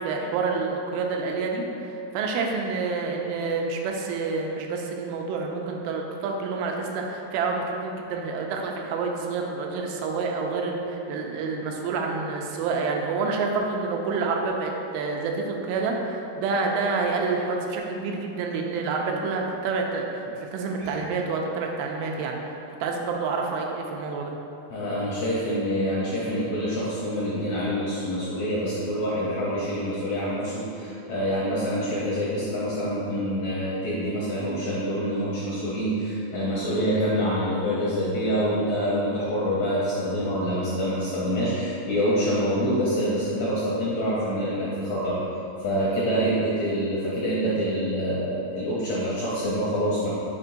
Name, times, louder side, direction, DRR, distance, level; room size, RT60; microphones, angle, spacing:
voice 1, 0.0-22.4 22.8-24.3, right 4 dB, 90° right, 1 dB, 2.4 m, -28 dB
voice 2, 24.7-45.2 45.6-50.1, equal, 75° left, -7 dB, 1.6 m, -26 dB
5.7 x 4.5 x 3.8 m, 2.8 s
omnidirectional pair, 4.1 m